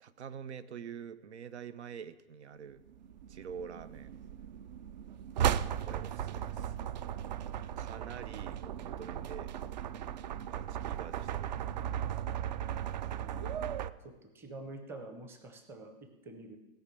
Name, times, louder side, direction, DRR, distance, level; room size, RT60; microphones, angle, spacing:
voice 1, 0.0-2.8 3.3-4.1 5.5-6.7 7.8-9.6 10.5-11.7, right 7 dB, 90° right, 15 dB, 0.9 m, -46 dB
sound 1, 2.9-13.9, right 10 dB, 45° right, 0.4 m, -36 dB
voice 2, 14.0-16.6, right 2 dB, 5° right, 7 dB, 0.7 m, -47 dB
17.0 x 5.8 x 8.3 m, 1.1 s
hypercardioid pair, 160°, 33 cm